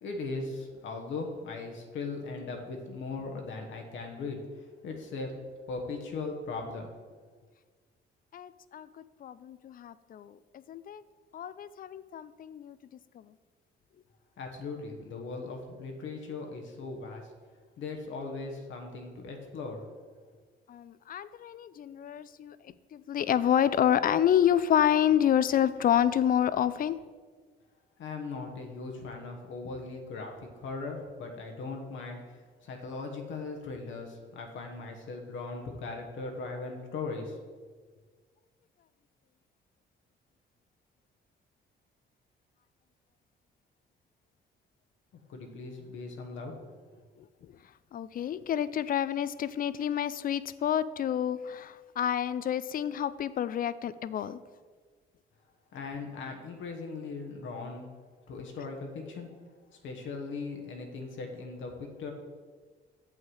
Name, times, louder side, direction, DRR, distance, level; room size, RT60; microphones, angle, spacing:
voice 1, 0.0-5.3 5.7-6.9 14.4-17.3 17.8-19.8 28.0-37.4 45.3-46.7 55.7-57.9 58.3-59.3 59.8-62.1, left 3 dB, 75° left, 2 dB, 1.2 m, -39 dB
voice 2, 8.3-8.9 9.2-11.0 11.3-12.8 13.1-13.3 20.7-27.0 47.2-47.3 47.9-54.4, left 10 dB, 45° left, 16 dB, 0.4 m, -28 dB
7.4 x 5.6 x 4.8 m, 1.5 s
cardioid pair, 90°, 20 cm